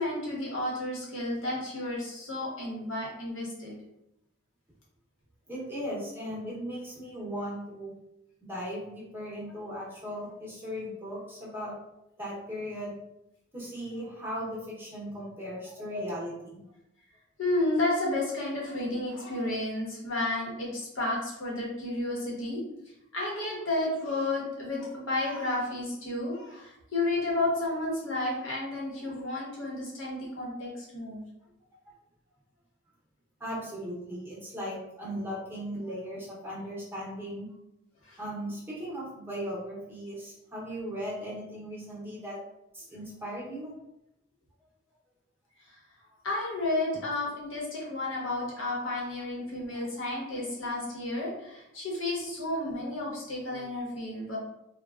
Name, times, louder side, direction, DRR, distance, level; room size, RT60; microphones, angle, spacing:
voice 1, 0.0-3.7 15.9-16.2 17.4-22.6 23.1-31.2 38.1-38.2 46.2-54.4, left 2 dB, 75° left, -4 dB, 1.0 m, -32 dB
voice 2, 5.5-7.9 8.4-11.7 12.2-12.9 13.5-16.6 33.4-37.5 38.2-42.4 42.7-43.7 46.1-46.2 49.7-49.9, equal, 10° right, -7 dB, 0.8 m, -37 dB
3.3 x 2.3 x 2.4 m, 0.85 s
head